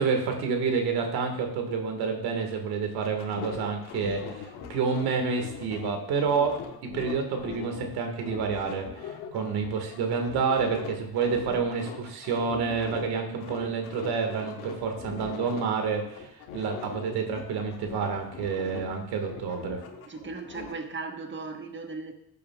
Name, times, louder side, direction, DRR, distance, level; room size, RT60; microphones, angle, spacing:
voice 1, 0.0-6.6 6.9-19.8, right 5 dB, 85° right, 4 dB, 1.8 m, -29 dB
sound 1, 3.0-7.9 8.2-13.1 13.4-15.6 16.0-19.0 19.2-20.7, left 6 dB, 90° left, 1.4 m, -41 dB
voice 2, 20.0-22.1, right 3 dB, 30° right, 5 dB, 1.3 m, -37 dB
14.5 x 8.4 x 2.4 m, 0.76 s
cardioid pair, 95°, 37 cm